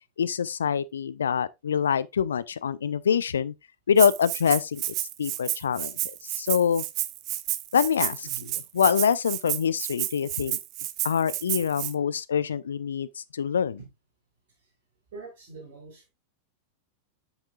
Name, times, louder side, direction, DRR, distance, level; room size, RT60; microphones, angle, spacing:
voice 1, 0.2-3.5 3.9-4.8 5.2-5.9 6.2-6.8 7.7-8.3 8.7-10.6 11.0-13.8, left 7 dB, 70° left, 0.4 m, -25 dB
Rattle (instrument), 4.0-11.9, right 15 dB, 40° right, 0.6 m, -31 dB
voice 2, 8.2-8.6 13.8-13.9 15.1-16.1, right 4 dB, 55° right, 3.1 m, -44 dB
8.0 x 6.5 x 2.4 m
figure-of-eight pair, 90°, 0 cm